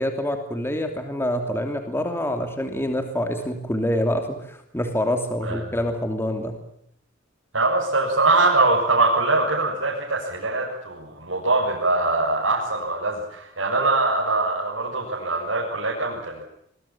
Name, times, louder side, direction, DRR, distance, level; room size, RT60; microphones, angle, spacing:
voice 1, 0.0-6.6, left 1 dB, 15° left, 5 dB, 2.9 m, -26 dB
voice 2, 7.5-16.4, right 2 dB, 85° right, -4 dB, 7.4 m, -22 dB
26.5 x 22.5 x 7.4 m, 0.73 s
head